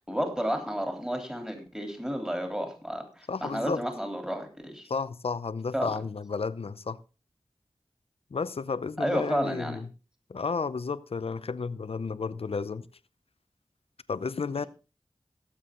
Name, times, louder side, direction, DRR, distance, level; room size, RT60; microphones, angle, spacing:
voice 1, 0.1-4.9 5.7-5.9 9.0-9.8, equal, 5° right, 3.5 m, -31 dB
voice 2, 3.3-3.8 4.9-7.0 8.3-9.9 10.3-12.9 14.1-14.7, left 5 dB, 70° left, 0.7 m, -32 dB
17.0 x 7.7 x 3.8 m
wide cardioid pair, 50°, 10 cm